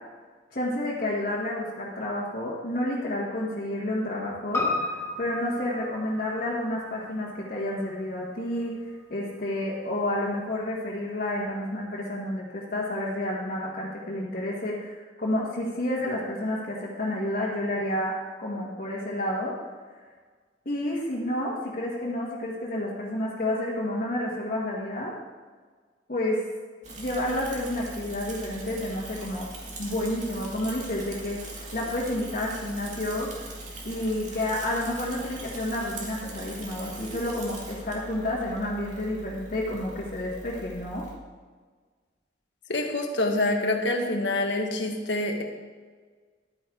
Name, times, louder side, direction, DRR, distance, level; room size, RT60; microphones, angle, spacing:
voice 1, 0.5-19.5 20.6-25.1 26.1-26.4 27.0-29.5 29.8-33.4 33.8-41.1, left 1 dB, 50° left, -7 dB, 1.7 m, -30 dB
Piano, 4.5-9.0 9.3-9.4, left 3 dB, 15° left, 2.2 m, -34 dB
Bicycle / Mechanisms, 26.8-41.1, right 1 dB, 45° right, 2.2 m, -41 dB
voice 2, 42.7-45.4, left 2 dB, 85° left, 3 dB, 1.5 m, -26 dB
11.5 x 9.6 x 3.9 m, 1.5 s
head